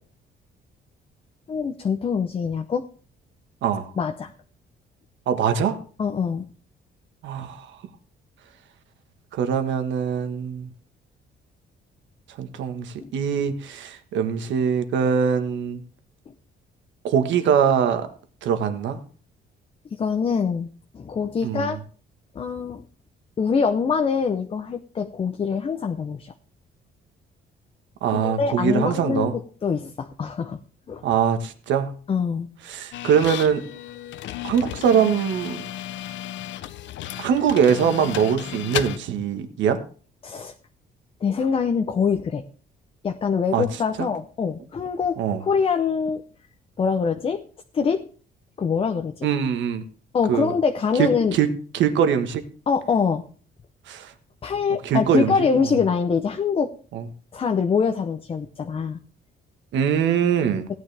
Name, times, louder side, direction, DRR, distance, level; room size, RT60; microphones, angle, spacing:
voice 1, 1.5-2.8 4.0-4.3 6.0-6.4 16.3-16.4 19.9-20.7 20.9-21.8 22.3-22.8 23.4-26.3 28.1-30.6 30.9-31.0 32.1-32.5 37.2-37.3 40.2-40.5 41.2-42.4 43.0-46.2 46.8-47.4 47.7-48.0 48.6-49.3 50.1-51.4 52.7-53.2 54.4-56.7 57.3-59.0, left 6 dB, 30° left, 6 dB, 0.6 m, -24 dB
voice 2, 5.3-5.8 7.2-7.7 9.3-10.7 12.4-15.8 17.0-18.1 18.4-19.0 21.4-21.7 28.0-29.3 31.0-31.9 32.7-33.6 34.4-35.6 37.2-39.8 43.5-43.6 44.0-44.1 45.2-45.4 49.2-49.8 50.3-50.5 51.0-51.5 51.7-52.4 53.9-54.1 54.8-55.5 56.9-57.0 59.7-60.7, right 7 dB, 80° right, 8 dB, 1.4 m, -22 dB
sound 1, 32.9-39.0, left 12 dB, 80° left, 0.7 m, -34 dB
16.0 x 9.4 x 3.4 m, 0.41 s
cardioid pair, 150°, 19 cm